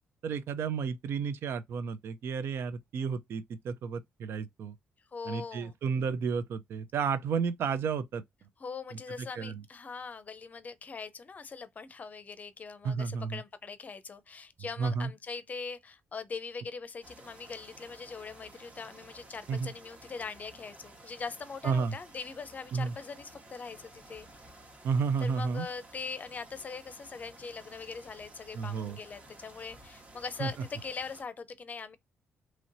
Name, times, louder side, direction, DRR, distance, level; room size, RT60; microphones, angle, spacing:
voice 1, 0.2-4.7 5.3-8.2 9.2-9.6 12.8-13.4 14.8-15.1 19.5-19.7 21.6-22.0 22.7-22.9 24.8-25.7 28.5-29.0 30.4-30.5, right 5 dB, 65° right, 0.5 m, -32 dB
voice 2, 5.1-5.8 8.6-24.3 25.2-32.0, left 5 dB, 35° left, 0.6 m, -41 dB
sound 1, 17.0-31.2, right 1 dB, 30° right, 1.2 m, -54 dB
3.0 x 2.9 x 2.6 m
cardioid pair, 85°, 4 cm